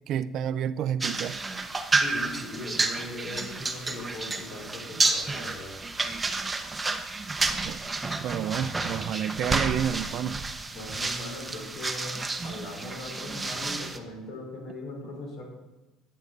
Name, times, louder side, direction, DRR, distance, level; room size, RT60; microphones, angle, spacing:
voice 1, 0.1-1.4 7.6-7.8 8.2-10.4, right 9 dB, 50° right, 15 dB, 0.4 m, -29 dB
sound 1, 1.0-14.0, right 3 dB, 15° right, 0.8 m, -30 dB
voice 2, 1.9-5.8 10.7-15.4, left 2 dB, 55° left, -1 dB, 4.3 m, -39 dB
11.5 x 9.5 x 4.0 m, 1.1 s
cardioid pair, 140°, 0 cm